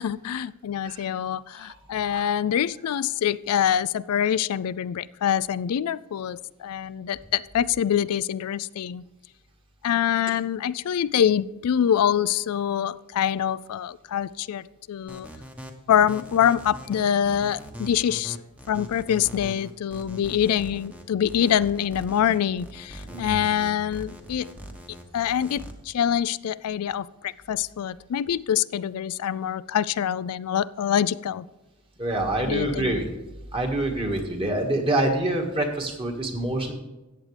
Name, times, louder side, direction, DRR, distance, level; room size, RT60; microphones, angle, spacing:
voice 1, 0.0-9.0 9.8-15.3 15.9-18.4 18.7-24.5 25.1-31.5 32.4-32.9, left 9 dB, 80° left, 17 dB, 0.4 m, -25 dB
sound 1, 15.1-25.7, equal, 5° right, 1.0 m, -41 dB
voice 2, 23.1-23.4 32.0-33.0 33.5-36.7, right 1 dB, 25° right, 3 dB, 1.7 m, -26 dB
14.0 x 8.8 x 3.3 m, 1.1 s
head